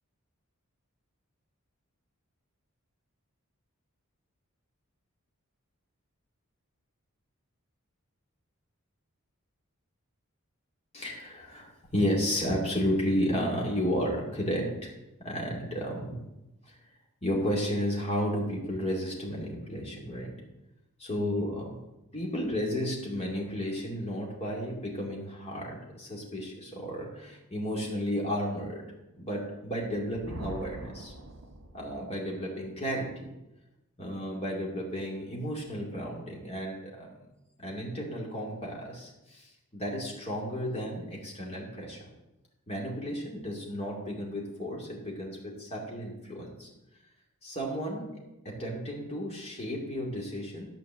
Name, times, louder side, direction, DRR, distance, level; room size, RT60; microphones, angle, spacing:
voice 1, 10.9-14.9 15.2-16.2 16.7-16.8 17.2-20.3 21.0-21.8 22.1-28.8 29.2-31.1 31.7-33.3 34.0-37.3 37.6-42.1 42.7-46.7 47.4-48.1 48.4-50.7, equal, 30° left, -2 dB, 2.5 m, -33 dB
Thunder, 29.9-32.2, right 1 dB, 80° right, 1.3 m, -44 dB
12.0 x 5.1 x 7.5 m, 0.98 s
head